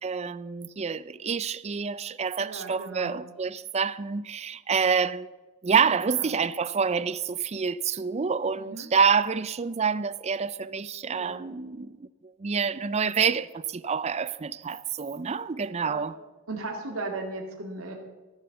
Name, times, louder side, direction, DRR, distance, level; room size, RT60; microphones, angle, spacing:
voice 1, 0.0-5.3 5.6-16.1, right 6 dB, 30° right, 0.4 m, -27 dB
voice 2, 2.4-3.3 6.1-6.3 8.6-8.9 11.1-11.4 15.8-16.1 16.5-17.9, right 3 dB, 75° right, 2.1 m, -36 dB
15.5 x 7.7 x 7.0 m
head